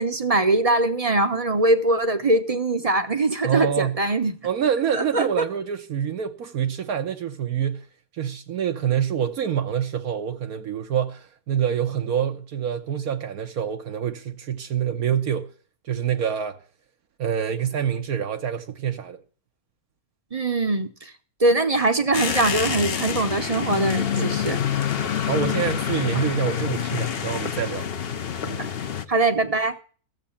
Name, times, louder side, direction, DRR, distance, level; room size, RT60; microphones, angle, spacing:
voice 1, 0.0-4.4 4.9-5.4 20.3-21.1 21.4-24.6 28.6-28.7 29.1-29.7, right 2 dB, 30° right, 0.8 m, -22 dB
voice 2, 3.4-4.0 4.4-7.9 8.1-15.5 15.8-16.6 17.2-19.2 24.0-24.6 25.0-27.8 28.4-28.7, right 8 dB, 70° right, 1.4 m, -26 dB
sound 1, 22.1-29.0, left 8 dB, 45° left, 0.9 m, -27 dB
14.0 x 7.5 x 7.1 m
omnidirectional pair, 1.6 m